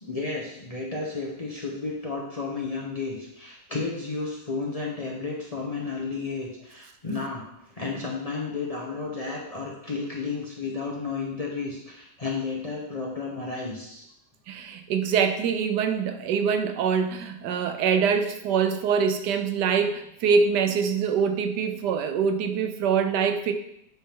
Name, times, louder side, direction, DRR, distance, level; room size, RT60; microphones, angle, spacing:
voice 1, 0.0-14.1, left 4 dB, 30° left, -3 dB, 0.8 m, -32 dB
voice 2, 14.5-23.5, right 6 dB, 85° right, 8 dB, 1.3 m, -24 dB
7.6 x 4.4 x 3.6 m, 0.76 s
omnidirectional pair, 1.7 m